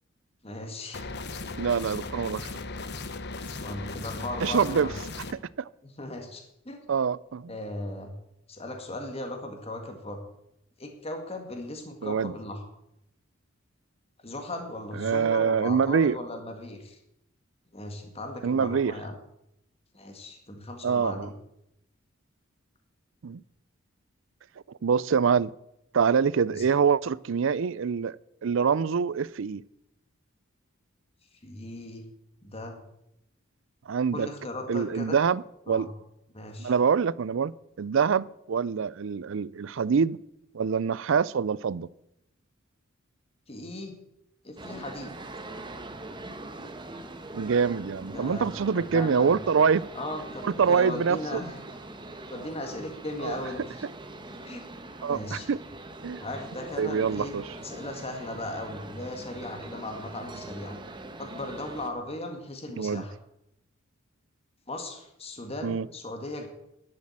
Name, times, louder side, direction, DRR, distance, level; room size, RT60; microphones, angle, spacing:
voice 1, 0.4-1.1 3.4-5.0 5.8-6.8 7.5-8.1 8.5-10.2 10.8-12.6 14.2-17.0 17.7-19.1 19.9-21.3 26.4-26.6 31.3-32.1 32.4-32.8 34.1-35.2 35.7-35.9 36.3-36.7 43.5-44.0 44.4-45.1 48.1-49.4 50.0-51.6 52.3-53.8 54.3-54.6 55.1-55.5 56.2-60.8 61.2-63.1 64.7-66.5, left 1 dB, 30° left, 1.9 m, -37 dB
sound 1, 0.9-5.3, left 3 dB, 55° left, 1.0 m, -37 dB
voice 2, 1.6-2.5 4.4-4.9 5.6-5.7 6.9-7.5 12.0-12.3 15.0-16.2 18.4-18.9 20.8-21.3 23.2-23.4 24.8-25.5 25.9-28.2 28.4-29.6 33.9-34.3 34.7-35.9 36.6-37.5 37.8-40.2 40.5-41.9 47.3-49.9 50.4-51.4 53.2-53.4 55.0-55.6 56.0-56.2 56.8-57.4 62.8-63.0 65.6-65.9, right 6 dB, 65° right, 0.4 m, -25 dB
sound 2, 44.6-61.9, right 2 dB, 25° right, 1.1 m, -42 dB
12.0 x 7.5 x 8.7 m
head